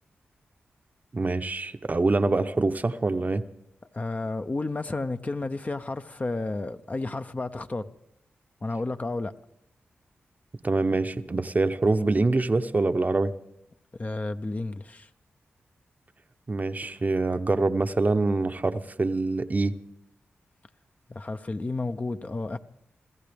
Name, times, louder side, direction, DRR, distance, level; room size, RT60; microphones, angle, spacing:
voice 1, 1.1-3.4 10.6-13.3 16.5-19.8, right 3 dB, 40° right, 0.8 m, -25 dB
voice 2, 3.9-7.9 8.6-9.3 13.9-15.1 21.1-22.6, left 2 dB, 35° left, 0.8 m, -31 dB
27.0 x 15.0 x 3.5 m
cardioid pair, 45°, 4 cm